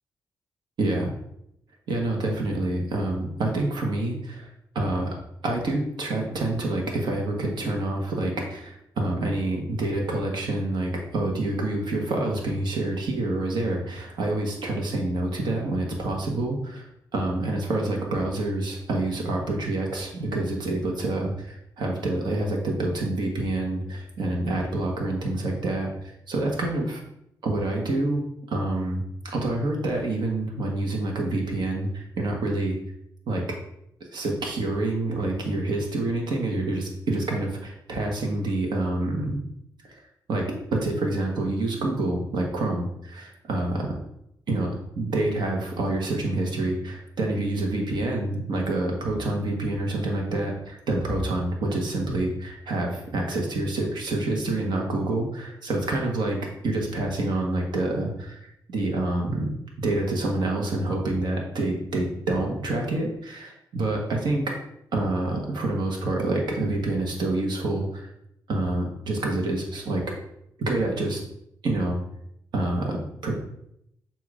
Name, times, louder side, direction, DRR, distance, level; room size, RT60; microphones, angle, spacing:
voice 1, 0.8-1.1 1.9-4.5 4.7-5.1 5.4-16.9 17.1-27.0 27.4-32.8 33.3-33.4 34.1-39.4 40.3-40.4 40.7-43.9 44.5-44.7 44.9-56.4 56.6-58.4 58.7-59.5 59.8-64.4 64.9-68.1 68.5-70.0 70.6-71.2 71.6-72.0 72.5-73.3, right 2 dB, 75° right, 0 dB, 1.5 m, -27 dB
7.2 x 3.0 x 4.9 m, 0.77 s
cardioid pair, 100°, 8 cm